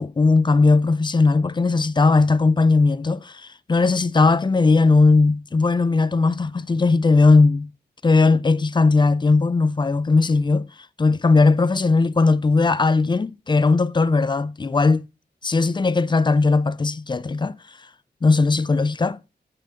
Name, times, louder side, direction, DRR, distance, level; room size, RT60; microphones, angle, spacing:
voice 1, 0.0-7.7 8.0-10.7 11.0-15.1 15.4-17.6 18.2-19.2, left 3 dB, 25° left, 0.4 m, -18 dB
9.0 x 7.6 x 2.5 m
cardioid pair, 70°, 18 cm